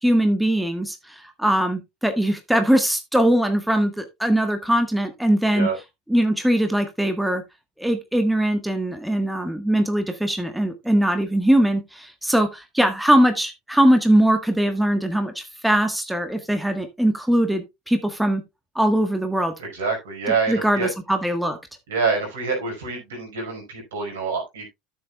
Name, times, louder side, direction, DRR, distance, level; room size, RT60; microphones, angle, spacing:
voice 1, 0.0-5.7 6.1-7.4 7.8-18.4 18.7-19.5 20.5-21.6, right 1 dB, 5° right, 7 dB, 1.5 m, -21 dB
voice 2, 19.6-20.9 21.9-24.7, right 4 dB, 75° right, 1 dB, 5.0 m, -26 dB
13.5 x 7.1 x 2.3 m, 0.21 s
figure-of-eight pair, 75°, 0 cm